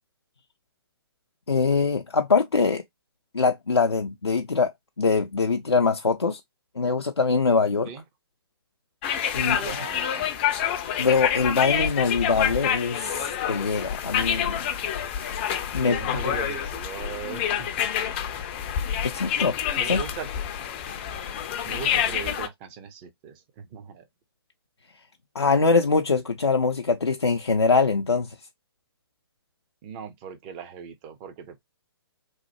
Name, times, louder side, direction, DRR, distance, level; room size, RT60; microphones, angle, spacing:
voice 1, 1.5-2.8 3.3-4.7 5.0-6.4 6.8-7.9 9.3-9.6 11.0-14.6 15.7-16.2 19.0-20.0 25.3-28.4, left 4 dB, 90° left, 0.4 m, -23 dB
sound 1, 9.0-22.5, left 9 dB, 25° left, 0.4 m, -27 dB
voice 2, 9.4-10.3 15.8-17.9 18.9-19.1 19.8-20.3 21.7-24.1 29.8-31.6, right 7 dB, 25° right, 0.5 m, -39 dB
3.0 x 2.0 x 2.8 m
figure-of-eight pair, 130°, 13 cm